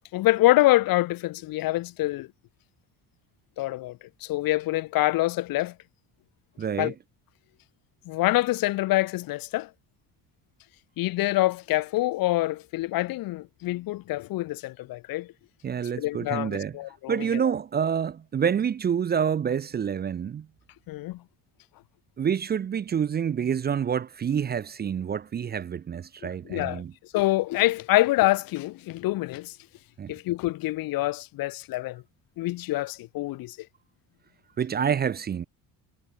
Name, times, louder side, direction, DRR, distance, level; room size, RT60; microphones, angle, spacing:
voice 1, 0.1-2.3 3.6-5.7 6.8-6.9 8.1-9.7 11.0-15.3 16.0-17.4 20.9-21.2 26.5-26.8 27.1-29.5 30.1-32.0 32.4-33.6, left 18 dB, 65° left, 0.7 m, -26 dB
voice 2, 6.6-6.9 15.6-16.8 17.1-20.5 22.2-26.9 30.0-30.1 34.6-35.5, right 7 dB, 25° right, 0.5 m, -27 dB
cardioid pair, 135°, 38 cm